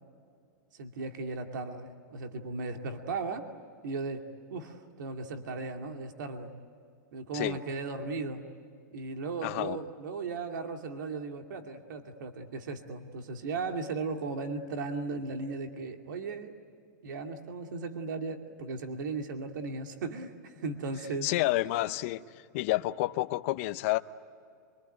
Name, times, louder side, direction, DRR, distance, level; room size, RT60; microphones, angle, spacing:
voice 1, 0.7-3.5 3.8-4.2 4.5-6.5 7.1-8.4 8.9-16.6 17.0-21.3, right 3 dB, 75° right, 4 dB, 2.4 m, -36 dB
voice 2, 9.4-9.8 21.2-22.2 22.5-24.0, left 18 dB, 45° left, 11 dB, 0.7 m, -29 dB
24.5 x 24.0 x 9.4 m, 2.3 s
supercardioid pair, 160°, 10 cm